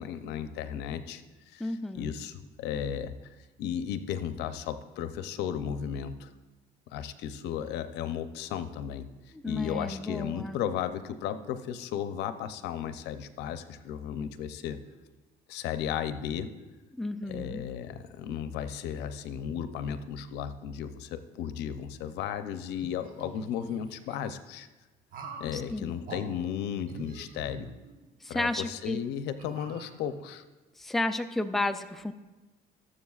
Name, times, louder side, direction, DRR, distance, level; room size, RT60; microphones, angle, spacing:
voice 1, 0.0-3.2 3.6-6.3 6.9-9.1 9.4-14.8 15.5-16.5 17.3-24.7 25.4-27.7 28.3-30.4, left 9 dB, 85° left, 11 dB, 0.6 m, -35 dB
voice 2, 1.6-2.2 9.4-10.6 16.9-17.6 25.5-26.0 28.2-29.0 30.8-32.1, left 2 dB, ahead, 8 dB, 0.4 m, -32 dB
sound 1, 22.7-24.2 25.1-25.5 26.0-26.2 26.8-28.1 28.6-28.7 29.4-30.3, right 3 dB, 55° right, 1.4 m, -45 dB
19.0 x 7.6 x 2.4 m, 1.1 s
cardioid pair, 110°, 17 cm